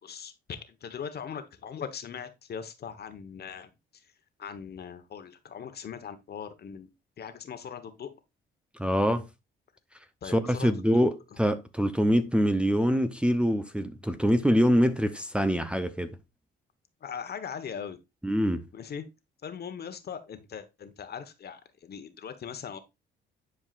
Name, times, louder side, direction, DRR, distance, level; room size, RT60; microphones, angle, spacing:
voice 1, 0.0-4.0 4.4-6.9 7.2-8.1 10.2-11.0 17.0-18.0 18.7-19.0 19.4-22.8, left 7 dB, 55° left, 1.2 m, -40 dB
voice 2, 8.8-9.3 10.2-16.1 18.2-18.6, equal, 5° right, 0.7 m, -24 dB
10.5 x 4.8 x 2.5 m
cardioid pair, 90°, 20 cm